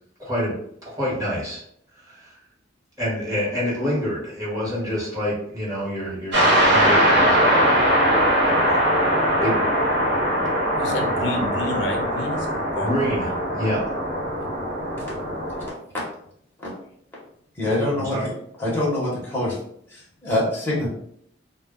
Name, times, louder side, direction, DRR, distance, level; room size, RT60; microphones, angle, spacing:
voice 1, 0.2-1.6 2.0-2.4 3.0-7.9 8.4-8.8 9.4-9.6 12.8-13.8 17.9-18.3, equal, 20° right, -7 dB, 1.1 m, -27 dB
sound 1, 6.3-15.7, equal, 65° right, 1.1 m, -21 dB
voice 2, 10.7-13.4 14.4-14.5 15.8-15.9, left 1 dB, 70° left, 3 dB, 0.5 m, -31 dB
voice 3, 17.6-18.2 18.6-19.6 19.9-20.9, left 1 dB, 10° left, -6 dB, 0.9 m, -24 dB
2.2 x 2.2 x 3.6 m, 0.68 s
head